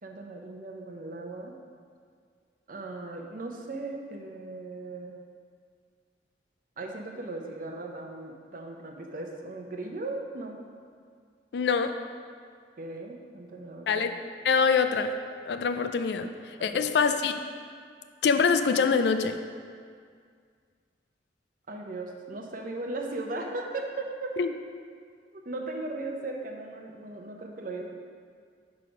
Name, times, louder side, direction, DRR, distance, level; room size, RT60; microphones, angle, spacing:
voice 1, 0.0-1.6 2.7-5.2 6.8-10.6 12.8-14.0 16.6-16.8 21.7-24.4 25.3-27.9, right 2 dB, 50° right, 2 dB, 0.7 m, -37 dB
voice 2, 11.5-11.9 13.9-14.1 14.4-15.1 15.5-16.3 16.6-17.4 18.2-19.4 24.4-24.5, left 5 dB, 65° left, 8 dB, 0.4 m, -24 dB
6.1 x 4.8 x 4.9 m, 2.1 s
head